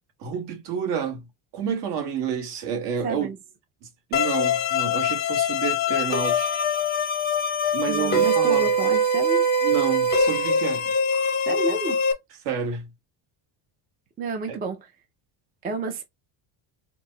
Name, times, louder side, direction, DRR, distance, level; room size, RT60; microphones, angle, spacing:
voice 1, 0.2-1.2 1.5-3.3 4.1-6.6 7.7-8.7 9.6-10.9 12.4-12.9 14.5-14.6, right 7 dB, 55° right, 1.3 m, -29 dB
voice 2, 3.0-3.4 7.9-9.5 11.5-12.0 14.2-14.9 15.6-16.0, right 3 dB, 20° right, 0.4 m, -30 dB
sound 1, 4.1-12.1, left 1 dB, 20° left, 0.6 m, -23 dB
4.5 x 2.0 x 3.7 m
cardioid pair, 170°, 48 cm